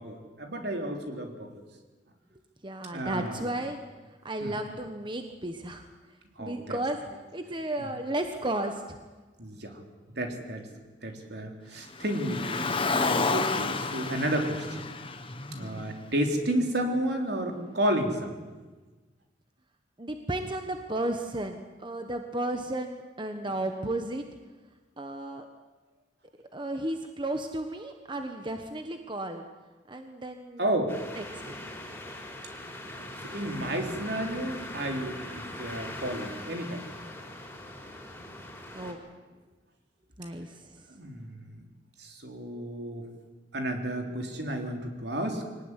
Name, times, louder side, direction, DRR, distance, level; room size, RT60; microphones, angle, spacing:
voice 1, 0.0-1.5 2.9-3.5 4.4-4.6 6.4-6.8 7.8-7.9 9.4-9.8 10.2-10.7 11.0-14.9 15.6-18.4 30.6-31.0 33.0-36.8 40.9-41.5 42.0-43.1 43.5-45.4, right 1 dB, 65° right, 3 dB, 3.7 m, -32 dB
voice 2, 2.6-3.8 4.2-5.9 6.4-7.0 7.3-9.0 15.5-15.9 20.0-24.2 25.0-25.4 26.5-29.4 29.9-30.6 31.2-31.6 38.7-39.0 40.2-40.9, right 1 dB, 25° right, 6 dB, 1.3 m, -34 dB
Car, 11.9-16.3, left 4 dB, 30° left, 1.5 m, -30 dB
sound 1, 30.9-38.9, left 1 dB, 10° left, 4.5 m, -41 dB
24.0 x 18.5 x 9.9 m, 1.3 s
head